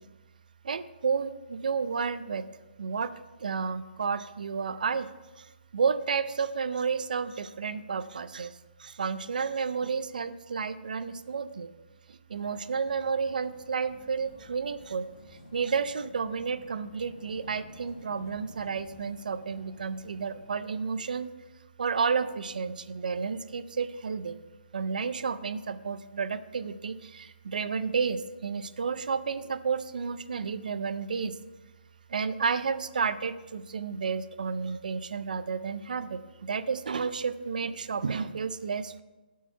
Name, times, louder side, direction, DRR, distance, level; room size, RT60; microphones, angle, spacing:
voice 1, 0.6-2.4 2.8-3.1 3.4-5.1 5.4-5.5 5.7-11.7 12.1-15.1 15.5-21.3 21.8-24.4 24.7-31.3 32.1-39.0, right 5 dB, 50° right, 13 dB, 0.4 m, -31 dB
sound 1, 12.3-20.6, left 2 dB, 35° left, 1.1 m, -53 dB
12.5 x 4.6 x 5.5 m, 1.2 s
hypercardioid pair, 180°, 6 cm